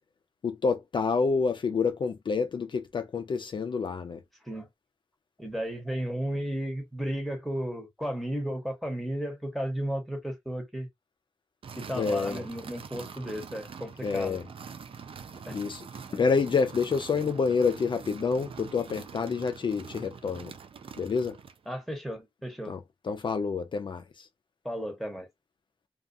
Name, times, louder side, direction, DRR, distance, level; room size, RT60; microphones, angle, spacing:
voice 1, 0.4-4.2 11.9-12.4 14.0-14.4 15.5-15.8 16.1-20.5 21.0-21.4 22.7-24.3, left 5 dB, 55° left, 0.3 m, -28 dB
voice 2, 5.4-10.9 11.8-14.4 15.5-15.6 21.7-22.7 24.6-25.3, equal, ahead, 1.0 m, -34 dB
sound 1, 11.6-21.7, right 6 dB, 65° right, 0.3 m, -44 dB
2.3 x 2.3 x 2.6 m
wide cardioid pair, 85°, 10 cm